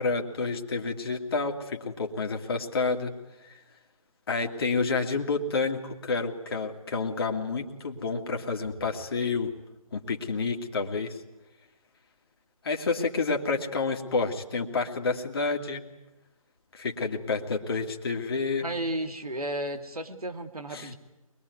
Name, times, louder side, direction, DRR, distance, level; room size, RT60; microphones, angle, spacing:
voice 1, 0.0-3.1 3.4-3.6 4.3-9.5 9.9-11.2 12.6-15.8 16.7-18.7 20.7-20.9, left 4 dB, 40° left, 3 dB, 2.2 m, -29 dB
voice 2, 18.6-20.9, right 1 dB, 80° right, 6 dB, 2.8 m, -33 dB
24.0 x 21.5 x 9.5 m, 0.96 s
figure-of-eight pair, 150°, 19 cm